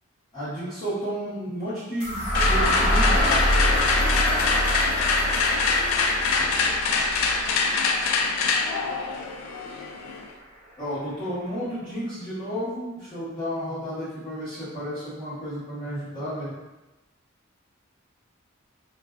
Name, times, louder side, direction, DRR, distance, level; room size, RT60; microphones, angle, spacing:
voice 1, 0.3-3.3 10.8-16.5, equal, 25° left, -13 dB, 1.0 m, -32 dB
sound 1, 2.0-9.9, equal, 35° right, 0.5 m, -27 dB
sound 2, 2.3-10.3, left 4 dB, 90° left, 0.3 m, -24 dB
sound 3, 3.7-7.7 8.1-8.2 8.5-8.6 8.8-8.9, right 1 dB, 5° left, 1.4 m, -37 dB
2.5 x 2.3 x 2.3 m, 1.1 s
head